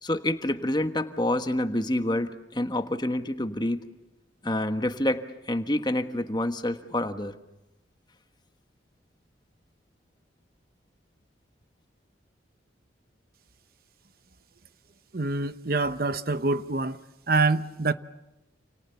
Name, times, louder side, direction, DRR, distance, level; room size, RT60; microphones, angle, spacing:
voice 1, 0.0-3.8 4.4-7.3, left 1 dB, 20° left, 1.4 m, -27 dB
voice 2, 15.1-17.0 17.3-17.9, right 3 dB, 50° right, 0.9 m, -25 dB
29.0 x 28.5 x 7.0 m
head